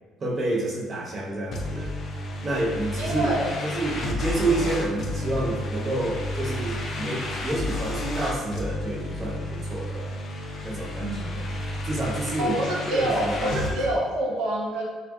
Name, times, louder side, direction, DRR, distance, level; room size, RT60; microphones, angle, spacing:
voice 1, 0.2-1.9 2.4-3.3 3.6-10.1 10.6-11.4 11.9-13.7, right 2 dB, 40° right, -3 dB, 0.5 m, -29 dB
sound 1, 1.5-13.7, left 2 dB, 50° left, 0.4 m, -31 dB
voice 2, 3.0-3.5 11.0-11.4 12.4-14.9, right 1 dB, 90° right, -4 dB, 0.6 m, -27 dB
2.4 x 2.4 x 2.2 m, 1.3 s
cardioid pair, 95°, 0 cm